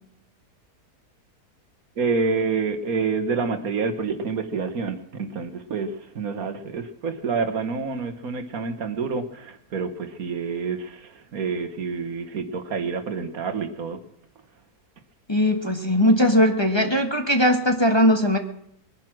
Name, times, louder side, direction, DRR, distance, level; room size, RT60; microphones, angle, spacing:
voice 1, 2.0-14.0, right 4 dB, 65° right, 8 dB, 1.7 m, -28 dB
voice 2, 15.3-18.4, equal, 15° left, 3 dB, 1.5 m, -19 dB
22.0 x 10.5 x 6.2 m, 0.74 s
omnidirectional pair, 1.7 m